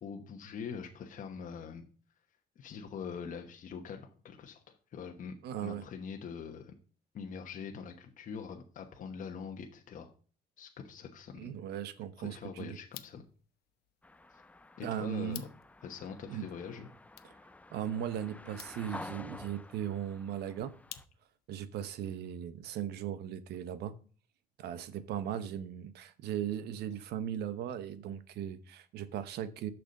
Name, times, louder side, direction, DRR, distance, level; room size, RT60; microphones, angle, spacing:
voice 1, 0.0-1.8 2.6-5.3 5.6-6.7 7.1-10.1 10.6-11.5 12.2-13.2 14.3-14.4 14.8-15.5 15.8-16.9, left 6 dB, 50° left, 1.2 m, -43 dB
voice 2, 5.4-5.8 11.4-12.8 14.8-15.5 16.3-16.5 17.2-17.3 17.7-20.7 21.5-23.9 24.6-29.7, right 10 dB, 75° right, 0.9 m, -38 dB
sound 1, 12.8-21.5, left 13 dB, 75° left, 0.8 m, -55 dB
sound 2, 14.0-21.0, left 2 dB, 10° left, 0.4 m, -50 dB
6.8 x 6.1 x 6.4 m
cardioid pair, 110°, 17 cm